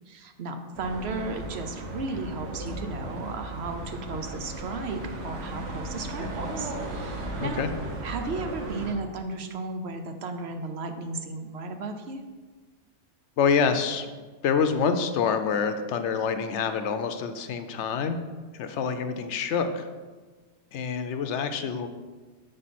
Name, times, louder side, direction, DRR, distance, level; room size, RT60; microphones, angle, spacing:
voice 1, 0.1-7.6 8.0-12.2, right 3 dB, 65° right, 6 dB, 0.9 m, -34 dB
sound 1, 0.7-8.9, right 1 dB, 90° right, 1.4 m, -36 dB
voice 2, 7.4-7.7 13.4-14.1 14.4-18.2 18.6-19.9 20.7-21.9, left 6 dB, 80° left, 9 dB, 0.9 m, -26 dB
7.5 x 5.2 x 4.1 m, 1.4 s
omnidirectional pair, 1.2 m